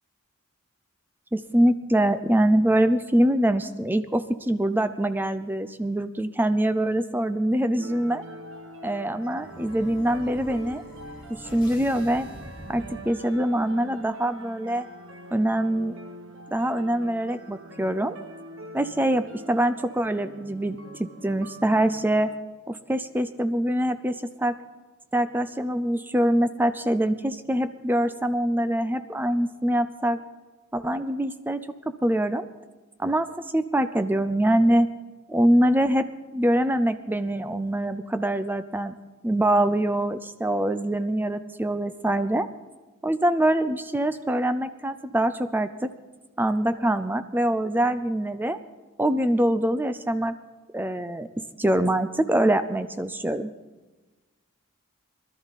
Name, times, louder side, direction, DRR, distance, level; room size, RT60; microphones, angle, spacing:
voice 1, 1.3-8.2 8.8-10.8 11.4-12.3 12.7-14.9 15.3-16.0 16.5-18.2 18.7-22.3 22.7-24.6 25.1-30.2 30.7-31.6 32.0-32.5 33.0-34.9 35.3-36.0 36.3-38.9 39.2-42.5 43.0-45.9 46.4-48.6 49.0-50.4 50.7-51.3 51.6-53.5, right 1 dB, 10° right, 11 dB, 0.4 m, -24 dB
sound 1, 7.8-22.4, right 1 dB, 65° right, 1.2 m, -44 dB
sound 2, 8.5-13.5, left 1 dB, 25° left, 5.3 m, -45 dB
20.5 x 12.5 x 4.1 m, 1.2 s
head